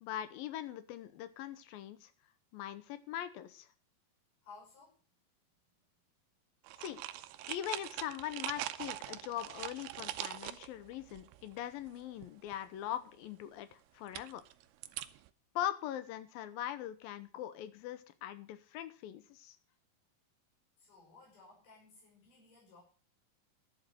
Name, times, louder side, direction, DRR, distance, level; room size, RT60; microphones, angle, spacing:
voice 1, 0.0-2.1 2.5-3.7 6.8-7.0 7.5-14.4 15.6-19.6, left 11 dB, 85° left, 13 dB, 2.6 m, -41 dB
voice 2, 4.4-5.0 20.8-22.8, left 4 dB, 65° left, -2 dB, 6.8 m, -57 dB
sound 1, 6.6-11.9 12.2-12.5 14.1-15.3, right 14 dB, 75° right, 2.2 m, -42 dB
11.5 x 7.5 x 7.7 m, 0.38 s
omnidirectional pair, 4.1 m